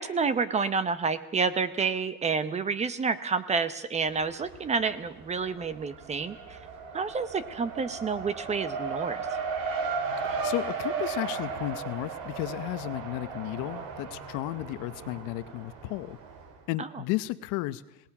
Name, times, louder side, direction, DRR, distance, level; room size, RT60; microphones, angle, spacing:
voice 1, 0.0-6.6 6.9-9.3 16.8-16.9, right 5 dB, 20° right, 15 dB, 0.8 m, -29 dB
Race car auto racing, 4.1-4.8 5.1-16.5, right 5 dB, 55° right, 3.3 m, -35 dB
voice 2, 10.2-16.2 16.7-18.1, left 17 dB, 55° left, 14 dB, 0.9 m, -34 dB
26.5 x 18.5 x 6.0 m, 0.85 s
cardioid pair, 155°, 37 cm